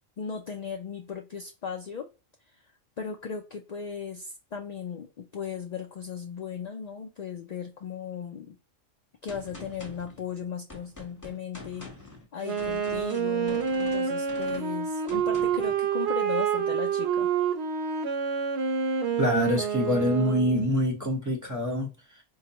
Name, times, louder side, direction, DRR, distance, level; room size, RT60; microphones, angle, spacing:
voice 1, 0.2-2.1 2.5-2.6 3.0-8.6 9.2-17.3, left 6 dB, 70° left, 0.4 m, -37 dB
Gunshot gunfire, 9.3-15.8, left 2 dB, 15° left, 0.8 m, -46 dB
Wind instrument woodwind instrument, 12.4-20.7, right 7 dB, 65° right, 0.8 m, -28 dB
voice 2, 19.2-22.2, left 1 dB, 15° right, 0.8 m, -26 dB
4.6 x 2.1 x 2.8 m
omnidirectional pair, 1.2 m